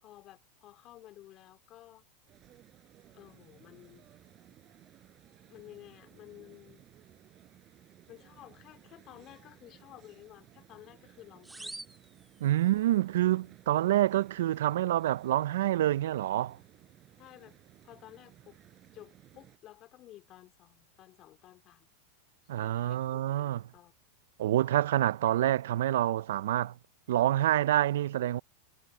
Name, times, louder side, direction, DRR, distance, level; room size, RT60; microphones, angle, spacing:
voice 1, 0.0-2.1 3.1-4.1 5.5-6.9 8.1-11.9 17.2-17.6 17.8-18.6 18.9-21.9 22.6-23.9, left 14 dB, 40° left, 3.0 m, -53 dB
sound 1, 2.3-19.6, right 12 dB, 35° right, 6.2 m, -59 dB
sound 2, 11.4-13.0, right 2 dB, 5° right, 2.5 m, -47 dB
voice 2, 12.4-16.6 22.5-23.6 24.4-26.7 27.1-28.4, right 13 dB, 80° right, 0.4 m, -27 dB
supercardioid pair, 135°, 0 cm